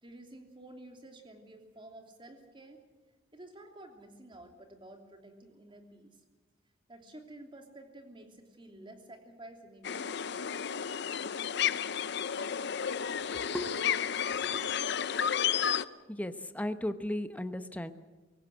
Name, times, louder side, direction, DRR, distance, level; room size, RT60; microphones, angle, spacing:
voice 1, 0.0-2.8 3.3-6.2 6.9-10.6, right 1 dB, 25° right, 4 dB, 3.0 m, -51 dB
sound 1, 9.8-15.8, left 8 dB, 60° left, 0.7 m, -32 dB
voice 2, 13.3-13.8 14.4-15.0 16.1-17.9, left 1 dB, 10° left, 10 dB, 1.0 m, -37 dB
23.0 x 18.0 x 7.9 m, 1.3 s
head